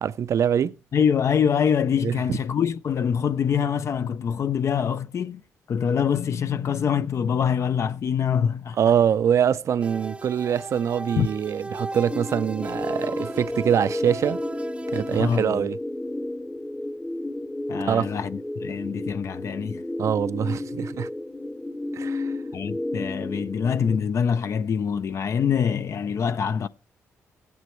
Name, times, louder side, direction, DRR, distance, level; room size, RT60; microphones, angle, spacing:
voice 1, 0.0-0.7 2.0-2.2 8.8-14.4 14.9-15.8 17.8-18.1 20.0-21.1 21.9-22.3, right 8 dB, 65° right, 0.5 m, -24 dB
voice 2, 0.9-5.4 5.7-8.8 11.2-11.3 15.1-15.6 17.7-19.8 22.5-26.7, left 7 dB, 60° left, 0.5 m, -24 dB
Keyboard (musical), 6.1-9.4, left 8 dB, 80° left, 0.9 m, -42 dB
sound 1, 9.8-15.5, right 2 dB, 20° right, 0.6 m, -37 dB
sound 2, 12.1-24.0, left 1 dB, 10° left, 0.8 m, -32 dB
16.5 x 9.6 x 3.1 m
cardioid pair, 65°, 6 cm